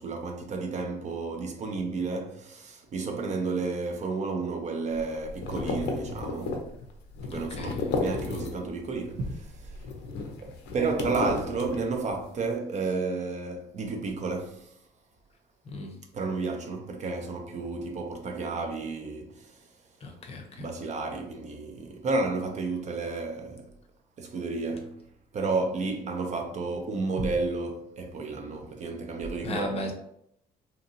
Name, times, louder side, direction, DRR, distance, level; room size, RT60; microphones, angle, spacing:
voice 1, 0.0-6.6 7.2-9.7 10.4-14.7 16.1-19.5 20.6-23.7 24.2-24.9 25.3-29.9, right 3 dB, 45° right, 0.6 m, -32 dB
sound 1, 4.9-8.8 9.1-12.2, left 3 dB, 85° left, 0.6 m, -34 dB
voice 2, 7.3-7.9 15.7-16.0 20.0-20.7 29.4-29.9, left 1 dB, 35° left, 0.6 m, -36 dB
2.8 x 2.6 x 2.6 m
cardioid pair, 110°, 17 cm